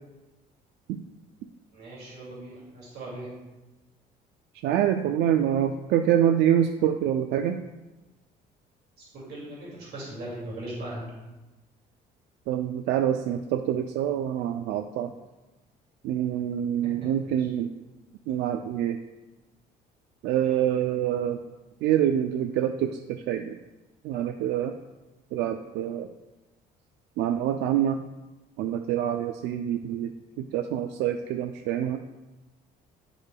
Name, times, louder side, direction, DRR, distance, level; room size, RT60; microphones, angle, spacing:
voice 1, 1.7-3.3 9.1-11.0 17.2-17.5, right 1 dB, 65° right, -6 dB, 2.2 m, -39 dB
voice 2, 4.6-7.6 12.5-15.1 16.0-17.7 18.3-19.0 20.2-21.4 21.8-23.6 24.0-24.7 25.3-26.1 27.2-28.0 28.6-30.1 30.5-32.0, right 10 dB, 80° right, 6 dB, 0.4 m, -26 dB
10.5 x 5.0 x 2.2 m, 1.1 s
cardioid pair, 110°, 17 cm